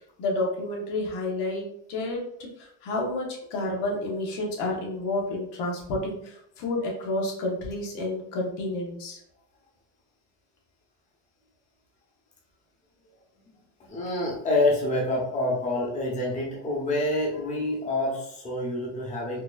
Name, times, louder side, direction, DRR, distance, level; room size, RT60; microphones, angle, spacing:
voice 1, 0.2-9.2, left 2 dB, 85° left, -1 dB, 1.3 m, -30 dB
voice 2, 13.9-19.4, left 2 dB, 20° left, -4 dB, 1.0 m, -27 dB
4.4 x 2.7 x 2.5 m, 0.72 s
cardioid pair, 135°, 38 cm